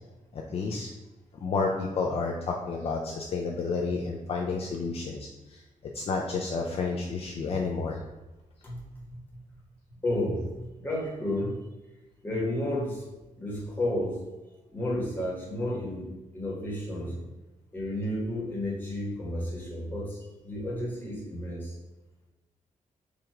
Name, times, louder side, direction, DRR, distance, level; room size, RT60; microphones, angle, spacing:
voice 1, 0.3-0.9 1.4-5.3 5.9-8.0, left 4 dB, 45° left, 0 dB, 0.4 m, -30 dB
voice 2, 10.0-11.7 12.2-13.0 13.4-14.2 14.7-17.2 17.7-21.8, left 1 dB, 15° left, -4 dB, 1.2 m, -32 dB
4.7 x 2.5 x 4.4 m, 1.1 s
wide cardioid pair, 180°, 14 cm